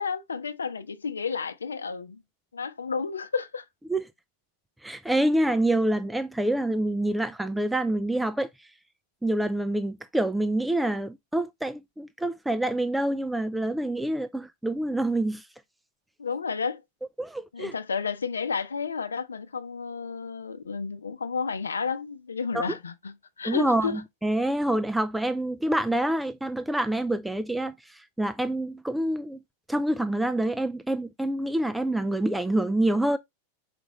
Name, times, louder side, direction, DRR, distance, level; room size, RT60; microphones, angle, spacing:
voice 1, 0.0-2.2 2.5-3.7 16.2-16.8 17.5-24.0, left 5 dB, 75° left, 0.7 m, -31 dB
voice 2, 4.8-8.7 9.2-15.5 17.2-17.7 22.5-22.7 23.4-29.4 29.7-33.2, right 1 dB, 5° right, 0.5 m, -27 dB
6.1 x 5.0 x 3.1 m
figure-of-eight pair, 90°, 0 cm